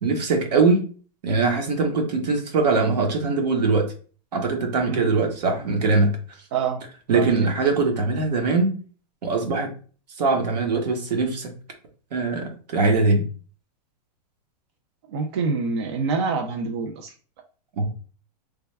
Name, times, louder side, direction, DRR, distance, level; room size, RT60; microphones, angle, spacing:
voice 1, 0.0-0.8 1.2-3.9 4.3-6.1 7.1-8.7 9.2-9.7 10.2-11.5 12.1-13.2 17.8-17.9, right 3 dB, 80° right, 3 dB, 1.1 m, -21 dB
voice 2, 6.5-6.8 7.1-7.5 15.1-17.1, right 4 dB, 40° right, 3 dB, 0.4 m, -26 dB
3.3 x 2.3 x 3.2 m, 0.40 s
supercardioid pair, 175°, 21 cm